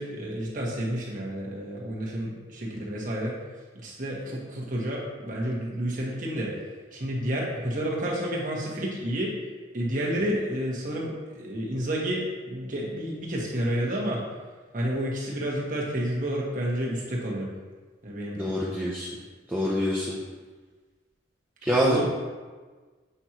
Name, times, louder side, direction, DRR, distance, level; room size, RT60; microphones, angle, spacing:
voice 1, 0.0-3.3 3.7-6.5 6.9-9.3 9.7-14.2 14.7-17.5 18.0-18.7 21.8-22.0, equal, 45° right, -4 dB, 1.4 m, -30 dB
voice 2, 18.4-19.1 19.5-20.2 21.6-22.0, equal, 10° right, -7 dB, 0.7 m, -25 dB
8.1 x 5.3 x 3.0 m, 1.4 s
head